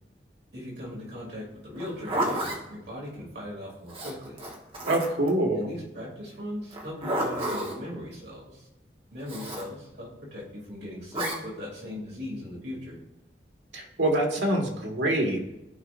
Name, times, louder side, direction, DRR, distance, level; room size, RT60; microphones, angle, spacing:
voice 1, 0.5-4.4 5.5-8.7 9.1-13.0, left 1 dB, 60° right, -5 dB, 2.9 m, -39 dB
Zipper (clothing), 1.8-2.6 3.9-5.3 6.7-7.8 9.3-9.7 11.1-11.4, right 1 dB, 30° right, 1.3 m, -31 dB
voice 2, 4.8-5.7 13.7-15.4, right 1 dB, 80° right, 0 dB, 1.7 m, -25 dB
14.0 x 5.2 x 2.6 m, 0.93 s
head